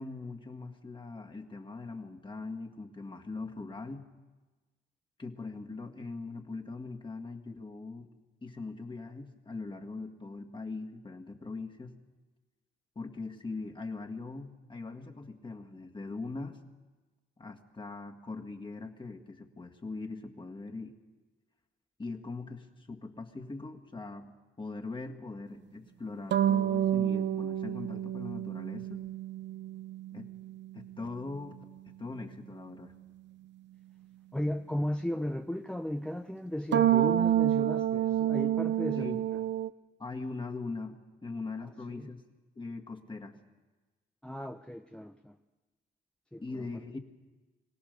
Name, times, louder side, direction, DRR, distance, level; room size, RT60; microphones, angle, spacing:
voice 1, 0.0-4.1 5.2-8.1 8.4-11.9 13.0-16.6 17.4-21.0 22.0-24.3 24.6-29.1 30.1-30.3 30.7-31.6 31.9-32.9 38.9-39.2 40.0-42.2 42.6-43.4 46.4-47.0, left 3 dB, 25° left, 1.9 m, -41 dB
sound 1, 26.3-30.8 36.7-39.7, right 11 dB, 65° right, 0.7 m, -29 dB
voice 2, 34.3-39.4 41.9-42.1 44.2-45.4 46.3-46.7, left 1 dB, 5° left, 0.6 m, -35 dB
23.5 x 17.0 x 6.7 m
cardioid pair, 90°, 20 cm